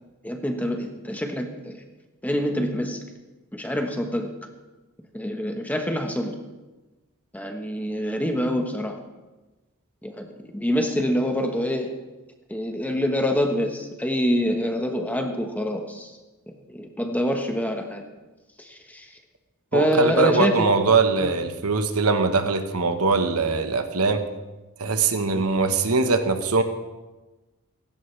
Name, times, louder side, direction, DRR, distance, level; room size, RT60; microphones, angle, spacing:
voice 1, 0.2-1.8 2.2-3.0 3.5-4.3 5.1-6.4 7.3-9.0 10.0-12.0 12.5-16.2 16.7-18.0 18.6-19.2 19.7-20.7 21.2-21.3, equal, 5° left, 4 dB, 1.2 m, -26 dB
voice 2, 19.7-24.2 24.8-26.6, right 4 dB, 85° right, 7 dB, 1.2 m, -22 dB
16.5 x 16.5 x 3.3 m, 1.1 s
head